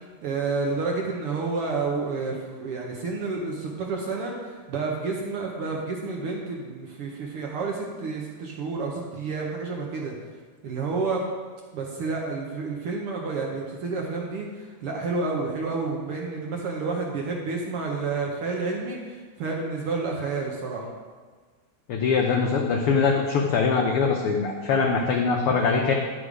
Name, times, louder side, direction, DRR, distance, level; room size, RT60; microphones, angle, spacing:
voice 1, 0.2-10.1 10.6-11.2 11.7-20.9, right 4 dB, 65° right, -1 dB, 1.5 m, -30 dB
voice 2, 21.9-25.9, left 5 dB, 85° left, 1 dB, 1.2 m, -22 dB
9.8 x 5.3 x 4.9 m, 1.4 s
omnidirectional pair, 3.3 m